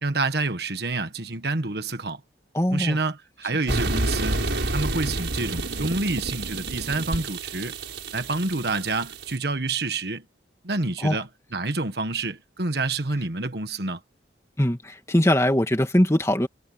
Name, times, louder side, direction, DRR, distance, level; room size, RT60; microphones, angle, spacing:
voice 1, 0.0-2.2 2.7-4.4 4.7-7.8 8.1-10.2 10.6-14.0, right 3 dB, 60° right, 1.4 m, -28 dB
voice 2, 2.5-3.0 3.7-3.8 11.0-11.2 14.6-16.5, left 1 dB, 15° left, 2.4 m, -21 dB
sound 1, 3.7-9.3, right 2 dB, 80° right, 5.1 m, -29 dB
head